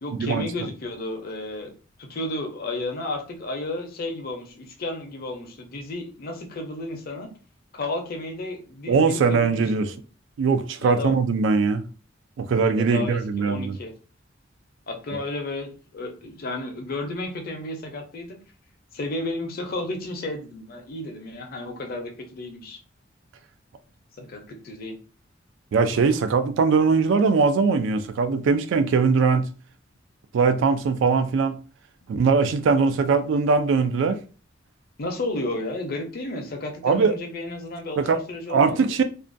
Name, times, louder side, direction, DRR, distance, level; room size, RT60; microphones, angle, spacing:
voice 1, 0.0-1.7 2.0-7.3 7.7-9.9 10.8-11.1 12.6-13.9 14.9-18.4 18.9-22.8 24.2-25.0 35.0-39.0, left 2 dB, 50° left, 0.5 m, -32 dB
voice 2, 8.9-9.9 10.4-11.8 12.4-13.8 15.1-15.2 25.7-29.5 30.3-31.6 32.1-34.2 36.8-37.1 38.0-38.2 38.5-39.0, right 5 dB, 70° right, 0.3 m, -21 dB
2.4 x 2.1 x 2.5 m
head